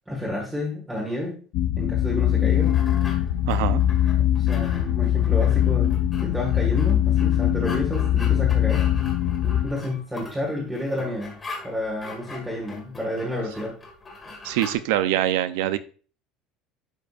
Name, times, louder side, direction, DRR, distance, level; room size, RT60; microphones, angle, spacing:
voice 1, 0.1-1.4 1.8-2.7 4.3-8.9 9.4-11.3 11.6-13.8, left 1 dB, 5° right, -4 dB, 1.6 m, -30 dB
sound 1, 1.5-9.7, left 11 dB, 50° left, 0.5 m, -21 dB
sound 2, 2.1-14.8, left 3 dB, 15° left, 1.8 m, -42 dB
voice 2, 3.5-3.8 14.4-15.8, right 13 dB, 80° right, 13 dB, 0.5 m, -24 dB
11.0 x 5.3 x 2.4 m, 0.39 s
cardioid pair, 175°, 0 cm